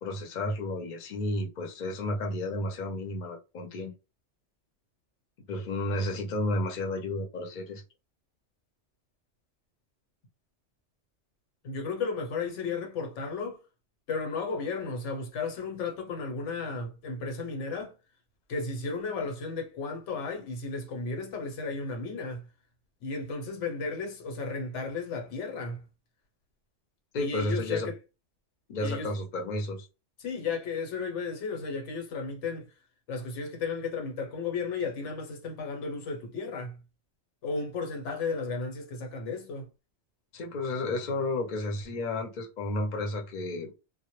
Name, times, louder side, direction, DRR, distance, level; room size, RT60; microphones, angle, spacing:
voice 1, 0.0-3.9 5.5-7.8 27.1-27.9 28.7-29.9 40.3-43.7, left 2 dB, 50° left, 0.7 m, -32 dB
voice 2, 11.6-13.6 14.1-17.9 18.5-22.5 23.0-25.8 27.2-27.9 28.8-29.1 30.2-32.7 33.1-36.8 37.4-39.7, left 4 dB, 85° left, 1.0 m, -34 dB
2.1 x 2.0 x 2.9 m
omnidirectional pair, 1.2 m